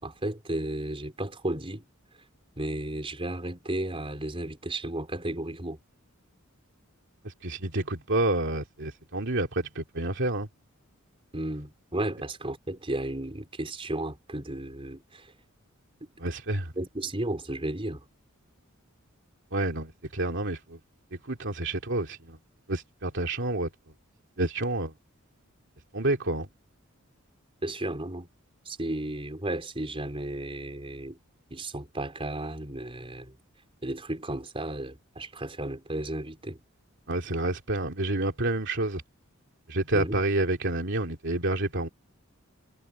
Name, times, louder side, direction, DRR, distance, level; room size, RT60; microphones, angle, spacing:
voice 1, 0.0-1.8 2.6-5.8 11.3-15.3 16.0-16.1 16.8-18.0 27.6-28.3 28.6-31.2 31.5-33.4 33.8-36.6 39.9-40.2, right 1 dB, 25° right, 4.3 m, -34 dB
voice 2, 7.2-10.5 16.2-16.7 19.5-20.8 21.2-22.4 22.7-23.7 24.4-24.9 25.9-26.5 37.1-39.0 39.7-41.9, right 2 dB, 60° right, 2.7 m, -29 dB
head